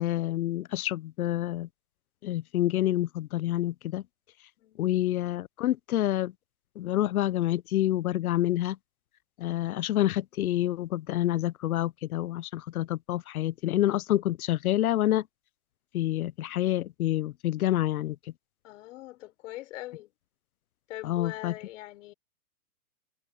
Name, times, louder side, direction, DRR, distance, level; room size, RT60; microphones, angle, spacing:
voice 1, 0.0-1.7 2.2-4.0 4.8-6.3 6.8-8.8 9.4-15.2 15.9-18.2 21.0-21.5, left 14 dB, 75° left, 0.8 m, -28 dB
voice 2, 18.6-20.1 20.9-22.1, left 16 dB, 55° left, 6.0 m, -42 dB
hypercardioid pair, 135°, 43 cm